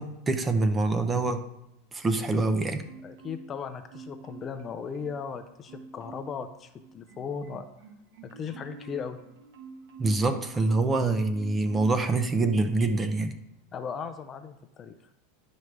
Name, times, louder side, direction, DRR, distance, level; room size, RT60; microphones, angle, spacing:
voice 1, 0.0-1.5 1.9-2.8 10.0-13.3, right 3 dB, 15° right, 8 dB, 0.7 m, -25 dB
Marimba xylophone, 2.8-3.6 3.9-5.3 5.7-6.4 6.8-10.9 11.3-12.0 12.4-12.6, right 4 dB, 70° right, 1.2 m, -48 dB
voice 2, 3.0-7.7 8.2-9.2 13.7-14.9, left 6 dB, 25° left, 8 dB, 0.5 m, -37 dB
11.0 x 5.0 x 3.3 m, 0.85 s
supercardioid pair, 135°, 0 cm